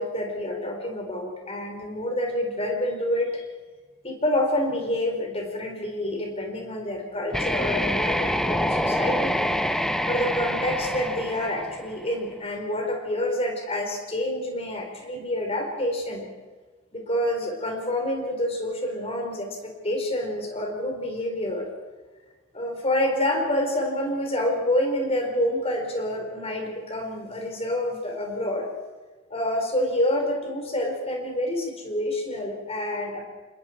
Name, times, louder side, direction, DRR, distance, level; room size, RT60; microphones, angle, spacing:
voice 1, 0.0-3.4 4.0-9.4 10.1-16.3 16.9-21.7 22.5-28.7 29.3-33.3, left 1 dB, 30° left, 2 dB, 4.4 m, -27 dB
sound 1, 7.3-12.2, equal, ahead, 0.8 m, -26 dB
26.5 x 21.5 x 4.6 m, 1.4 s
head